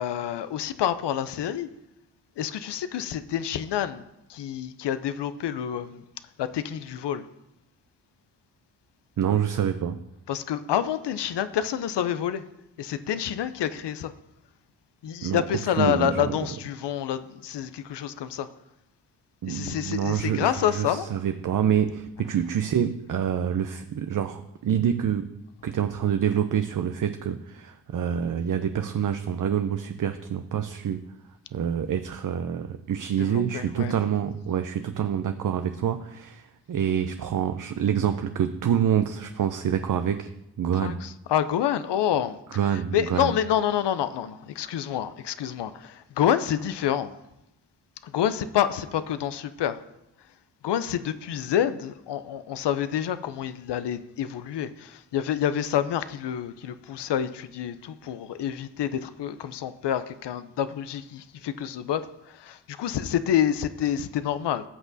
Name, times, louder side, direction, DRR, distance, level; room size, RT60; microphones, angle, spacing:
voice 1, 0.0-1.7 2.4-4.0 4.3-6.0 6.4-7.2 10.3-12.4 12.8-14.1 15.0-18.5 19.5-21.1 33.2-33.9 40.8-42.4 42.7-47.1 48.0-49.8 50.6-62.0 62.4-64.6, left 10 dB, 75° left, 0.6 m, -28 dB
voice 2, 9.2-10.0 15.2-15.4 15.8-16.4 19.4-25.3 25.6-31.0 31.5-40.3 40.6-41.0 42.5-43.3, right 9 dB, 50° right, 0.6 m, -26 dB
15.5 x 6.1 x 2.7 m
cardioid pair, 50°, 42 cm